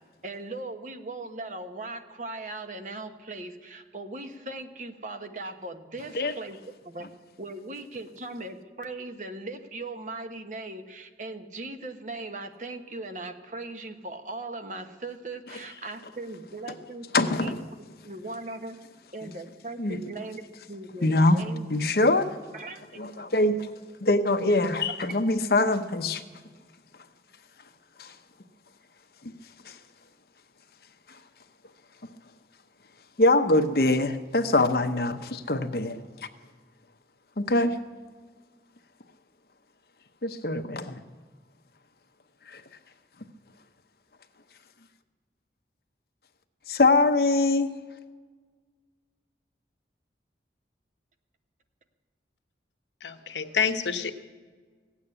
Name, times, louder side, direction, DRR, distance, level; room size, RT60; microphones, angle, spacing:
voice 1, 0.2-6.6 6.8-7.1 7.4-17.5 18.0-18.8 19.1-21.1 21.3-21.7 22.5-23.0 24.4-24.6, right 2 dB, 45° right, 1.1 m, -39 dB
voice 2, 17.1-17.6 19.2-19.3 19.8-20.0 21.0-21.4 21.7-22.4 23.0-23.7 24.0-26.2 28.0-28.1 29.2-29.3 29.6-29.8 31.1-31.2 33.2-36.0 37.4-37.8 40.2-41.0 42.5-42.6 46.7-47.8, left 2 dB, 55° left, 0.9 m, -23 dB
voice 3, 53.0-54.2, left 6 dB, 85° left, 1.0 m, -28 dB
16.0 x 8.5 x 9.7 m
head